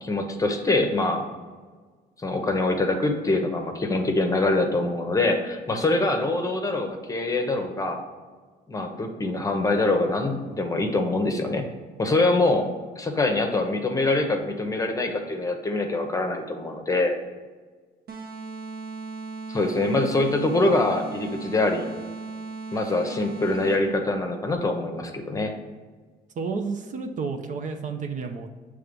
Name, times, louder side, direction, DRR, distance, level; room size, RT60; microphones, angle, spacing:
voice 1, 0.0-1.3 2.2-8.0 8.7-11.7 12.0-12.7 13.0-17.2 19.5-21.9 22.7-25.5, left 2 dB, 20° left, 4 dB, 0.9 m, -24 dB
sound 1, 18.1-24.0, right 3 dB, 65° right, 1.3 m, -37 dB
voice 2, 26.4-28.5, right 4 dB, 50° right, 5 dB, 0.7 m, -31 dB
6.6 x 3.4 x 5.3 m, 1.4 s
cardioid pair, 110°, 17 cm